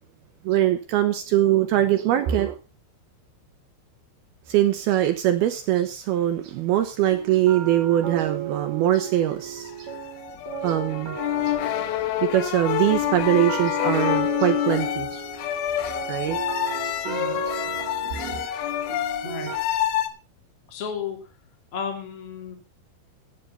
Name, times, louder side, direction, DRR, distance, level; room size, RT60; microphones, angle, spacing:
voice 1, 0.4-2.6 4.5-9.9 10.6-11.2 11.5-11.6 12.2-15.2 15.8-16.4 16.8-16.9 17.6-18.5, right 12 dB, 75° right, 8 dB, 2.3 m, -23 dB
sound 1, 7.1-19.6, right 9 dB, 50° right, 2.2 m, -35 dB
sound 2, 9.6-20.1, left 12 dB, 80° left, 3.4 m, -27 dB
voice 2, 17.0-17.4 19.2-19.5 20.7-21.2 21.7-22.6, left 6 dB, 35° left, 4 dB, 2.9 m, -33 dB
12.5 x 9.2 x 5.4 m, 0.33 s
omnidirectional pair, 5.5 m